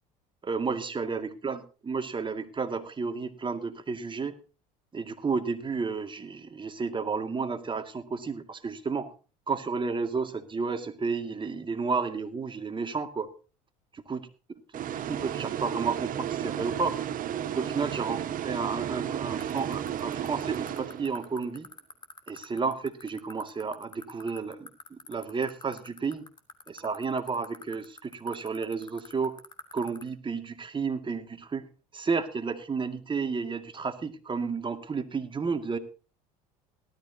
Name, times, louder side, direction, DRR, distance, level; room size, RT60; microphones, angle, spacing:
voice 1, 0.4-4.3 4.9-9.1 9.5-13.3 13.9-14.2 14.7-17.0 17.5-21.7 22.3-26.2 26.7-29.3 29.7-31.6 31.9-35.8, right 4 dB, 25° right, 7 dB, 2.2 m, -32 dB
sound 1, 14.7-21.4, right 10 dB, 50° right, 1.4 m, -33 dB
sound 2, 19.4-30.0, left 5 dB, 25° left, 2.8 m, -43 dB
18.5 x 13.0 x 2.8 m, 0.35 s
supercardioid pair, 80°, 18 cm